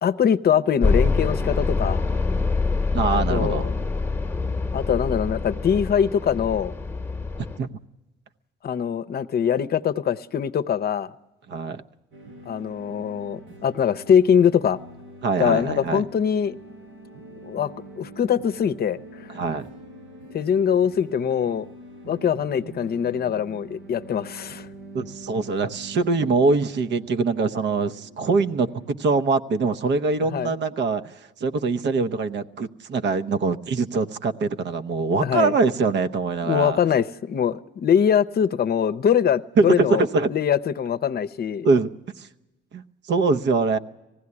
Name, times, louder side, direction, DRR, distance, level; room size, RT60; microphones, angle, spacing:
voice 1, 0.0-2.0 3.1-3.7 4.7-6.7 8.6-11.1 12.5-14.8 15.4-16.6 17.4-19.3 20.3-21.7 22.1-24.7 30.3-30.5 35.2-35.5 36.4-40.0 40.3-41.7, left 8 dB, 50° left, 0.7 m, -23 dB
sound 1, 0.8-7.6, left 4 dB, 10° left, 1.0 m, -25 dB
voice 2, 2.9-3.7 7.6-7.7 11.5-11.8 15.2-16.0 19.3-19.6 24.9-36.8 39.6-40.3 41.6-41.9 42.2-42.3 42.7-43.8, right 4 dB, 65° right, 0.9 m, -23 dB
sound 2, 12.1-28.9, right 2 dB, 80° right, 6.7 m, -44 dB
19.0 x 15.5 x 9.6 m
cardioid pair, 90°, 20 cm